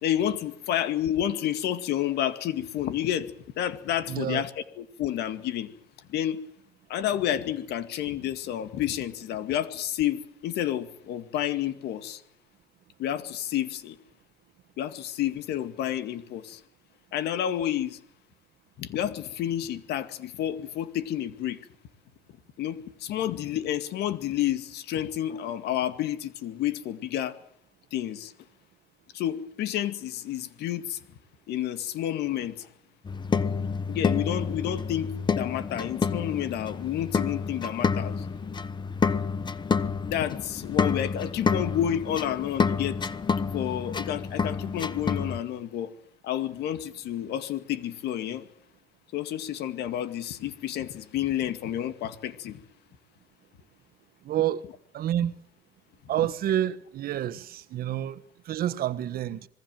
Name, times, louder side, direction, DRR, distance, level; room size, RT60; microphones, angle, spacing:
voice 1, 0.0-5.7 6.1-6.4 6.9-12.2 13.0-14.0 14.8-16.6 17.1-18.0 18.8-21.6 22.6-27.4 27.9-28.3 29.1-31.0 31.5-32.7 33.6-38.3 40.0-43.0 43.5-45.9 46.2-48.5 49.1-52.6, left 11 dB, 80° left, 2.2 m, -30 dB
voice 2, 4.1-4.4 54.2-54.6 54.9-55.3 56.1-59.5, right 12 dB, 65° right, 1.3 m, -28 dB
sound 1, 33.0-45.4, left 5 dB, 25° left, 1.1 m, -29 dB
26.5 x 20.5 x 7.8 m
cardioid pair, 110°, 17 cm